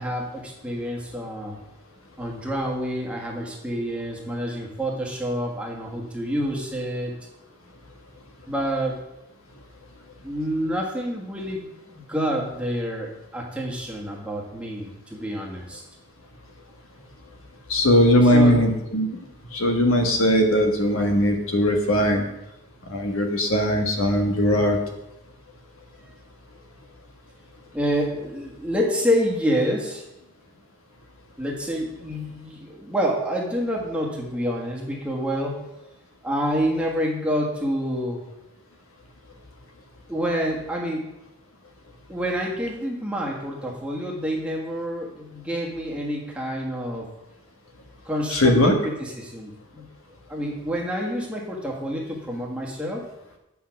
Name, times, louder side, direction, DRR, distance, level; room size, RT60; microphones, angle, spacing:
voice 1, 0.0-1.5 2.2-7.1 8.5-9.0 10.2-15.8 18.3-18.6 27.7-30.1 31.4-35.6 36.2-38.2 40.1-41.1 42.1-47.1 48.0-49.8 50.3-53.0, equal, 5° right, -2 dB, 1.5 m, -28 dB
voice 2, 17.7-19.1 19.5-22.2 22.9-24.8 48.3-48.7, equal, 80° left, 3 dB, 1.4 m, -19 dB
8.4 x 5.7 x 5.8 m, 0.89 s
head